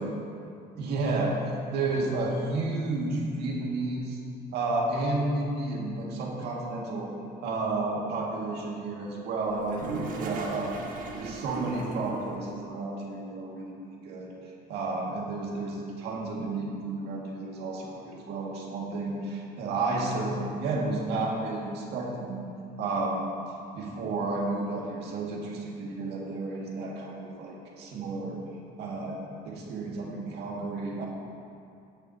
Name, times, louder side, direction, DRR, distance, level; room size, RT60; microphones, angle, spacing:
voice 1, 0.8-1.4 1.7-4.2 4.5-7.1 7.4-10.8 11.1-13.7 14.0-14.3 14.7-22.4 22.8-23.3 23.7-28.4 28.8-29.2 29.4-31.1, right 3 dB, 80° right, -2 dB, 2.0 m, -31 dB
Toilet flush, 9.5-12.5, right 3 dB, 55° right, 1.5 m, -37 dB
16.5 x 8.8 x 2.8 m, 2.6 s
cardioid pair, 110°, 17 cm